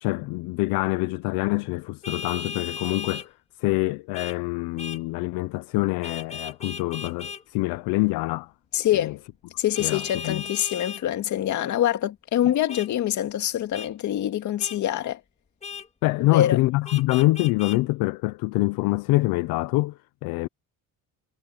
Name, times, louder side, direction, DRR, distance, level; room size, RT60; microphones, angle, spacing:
voice 1, 0.0-3.3 3.6-8.5 8.9-9.1 9.8-10.4 12.4-12.5 16.0-20.5, left 21 dB, 85° left, 0.7 m, -25 dB
Vehicle horn car horn honking, 2.0-3.3 4.1-4.4 4.8-5.0 6.0-7.4 9.7-11.0 12.7-12.9 13.7-13.9 14.6-14.8 15.6-15.9 16.8-17.8, left 6 dB, 20° left, 2.1 m, -36 dB
voice 2, 8.7-9.2 9.6-15.2 16.2-16.6, left 11 dB, 55° left, 2.2 m, -25 dB
cardioid pair, 140°, 36 cm